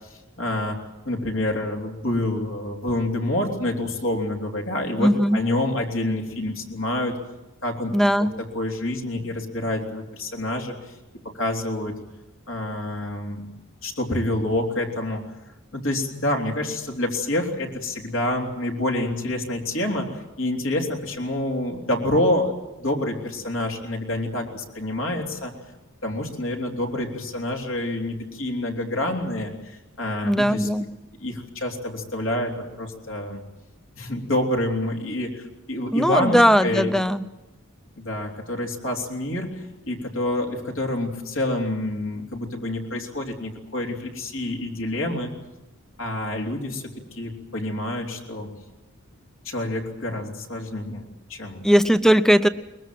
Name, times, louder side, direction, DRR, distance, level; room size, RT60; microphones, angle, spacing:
voice 1, 0.4-7.2 7.6-8.3 8.5-10.9 11.3-12.0 12.5-13.5 13.8-15.2 15.7-25.5 26.0-30.7 31.2-33.4 34.0-36.9 38.0-45.3 46.0-46.8 47.2-48.5 49.5-51.7, left 1 dB, 65° left, 0 dB, 3.5 m, -27 dB
voice 2, 5.0-5.4 7.9-8.3 30.2-30.9 35.9-37.2 51.6-52.5, equal, ahead, 12 dB, 0.7 m, -18 dB
23.0 x 21.0 x 7.6 m, 1.0 s
head